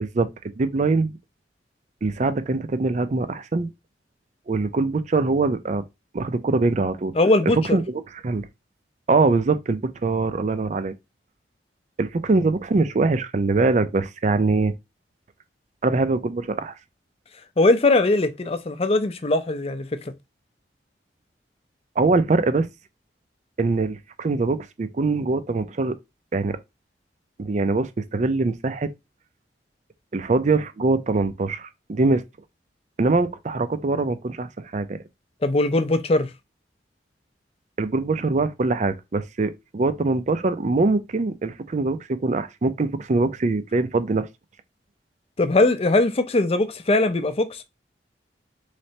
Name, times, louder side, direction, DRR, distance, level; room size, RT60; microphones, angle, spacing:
voice 1, 0.6-1.2 2.0-3.7 4.5-5.8 6.1-7.1 7.7-8.5 9.1-10.9 12.0-14.7 15.8-16.7 22.0-22.7 23.6-26.0 26.3-26.6 27.4-28.9 30.1-32.2 33.0-35.0 37.8-44.3, right 3 dB, 40° right, 0.4 m, -23 dB
voice 2, 7.2-7.8 17.6-19.9 35.4-36.3 45.4-47.6, left 2 dB, 35° left, 0.5 m, -20 dB
4.0 x 3.2 x 2.8 m
head